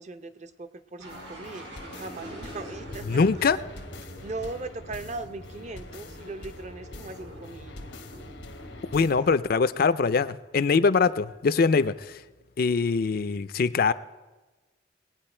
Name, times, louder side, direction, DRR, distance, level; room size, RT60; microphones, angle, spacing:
voice 1, 0.0-3.1 4.0-7.7, right 3 dB, 40° right, 11 dB, 0.6 m, -39 dB
sound 1, 1.0-9.4, equal, 85° right, 3.8 m, -44 dB
sound 2, 1.1-9.1, left 3 dB, 80° left, 0.9 m, -46 dB
voice 2, 3.1-3.6 8.9-12.2 12.6-13.9, left 4 dB, 55° left, 14 dB, 0.4 m, -23 dB
20.0 x 9.0 x 4.4 m, 1.2 s
head